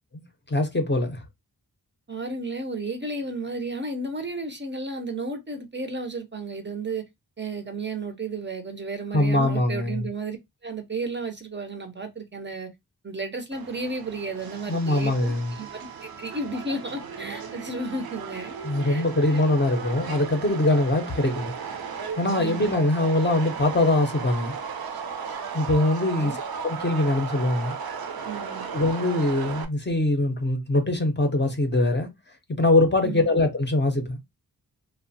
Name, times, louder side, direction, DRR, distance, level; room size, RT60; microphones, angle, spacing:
voice 1, 0.1-1.2 9.1-10.1 14.7-15.5 18.6-21.5 22.2-24.5 25.5-27.7 28.7-32.1 32.5-34.2, left 2 dB, 30° left, 0.6 m, -23 dB
voice 2, 2.1-7.0 7.4-10.4 10.6-12.7 13.0-18.5 18.9-19.4 22.4-22.8 26.2-26.4 28.2-28.7 33.0-33.4, right 3 dB, 30° right, 0.5 m, -33 dB
Subway metro underground, 13.5-29.6, right 6 dB, 75° right, 0.6 m, -36 dB
2.9 x 2.0 x 2.6 m
wide cardioid pair, 90°, 37 cm